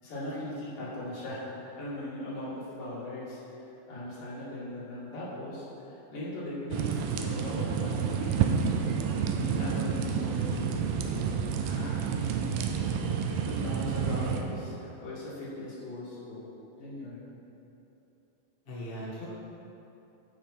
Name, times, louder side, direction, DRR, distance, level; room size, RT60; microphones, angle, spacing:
voice 1, 0.0-3.4 3.9-8.9 9.3-11.3 11.6-16.5 16.8-17.3, left 1 dB, 65° left, -9 dB, 4.0 m, -39 dB
sound 1, 6.7-14.4, right 7 dB, 85° right, 2.4 m, -29 dB
voice 2, 13.7-14.3 18.6-19.3, left 1 dB, 30° left, -7 dB, 0.9 m, -40 dB
14.0 x 5.3 x 4.5 m, 2.9 s
omnidirectional pair, 4.1 m